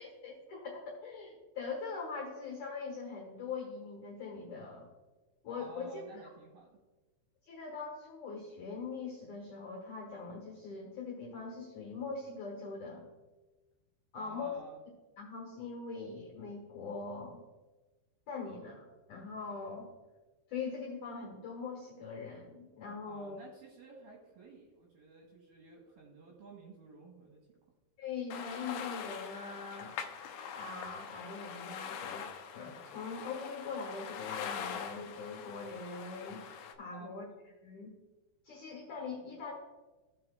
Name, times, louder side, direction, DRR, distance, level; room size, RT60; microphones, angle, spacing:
voice 1, 0.0-4.9 5.4-5.9 7.5-13.1 14.1-14.5 15.2-17.4 18.3-19.9 20.5-23.4 28.0-29.9 30.5-32.3 32.5-36.5 36.8-37.2 37.6-37.9 38.4-39.5, left 4 dB, 65° left, -2 dB, 2.0 m, -42 dB
voice 2, 5.5-6.8 14.1-14.8 23.1-27.6 36.9-37.1, right 3 dB, 65° right, -2 dB, 2.4 m, -53 dB
sound 1, 28.3-36.7, left 7 dB, 80° left, 2.4 m, -43 dB
16.0 x 5.9 x 2.3 m, 1.2 s
omnidirectional pair, 5.2 m